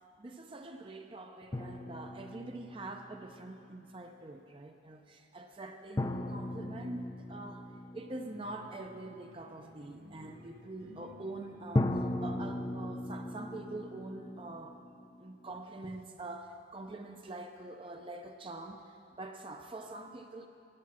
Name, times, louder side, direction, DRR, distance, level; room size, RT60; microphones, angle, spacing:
voice 1, 0.2-14.8 15.2-18.8 19.2-20.5, right 2 dB, 30° right, 5 dB, 0.6 m, -45 dB
sound 1, 1.5-3.3 6.0-8.8 11.7-15.6, left 1 dB, 20° left, 0.4 m, -37 dB
sound 2, 8.2-13.6, left 1 dB, 85° right, 3.7 m, -56 dB
12.0 x 9.4 x 7.4 m, 2.5 s
head